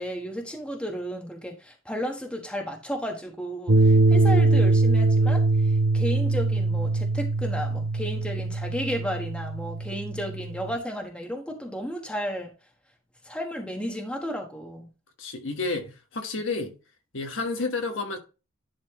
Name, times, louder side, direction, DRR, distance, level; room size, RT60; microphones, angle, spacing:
voice 1, 0.0-12.5 13.2-14.9, equal, 5° left, 1.2 m, -33 dB
sound 1, 3.7-10.8, right 2 dB, 65° right, 0.8 m, -22 dB
voice 2, 15.2-16.7 17.1-18.2, left 3 dB, 70° left, 1.4 m, -30 dB
11.0 x 4.3 x 3.0 m
head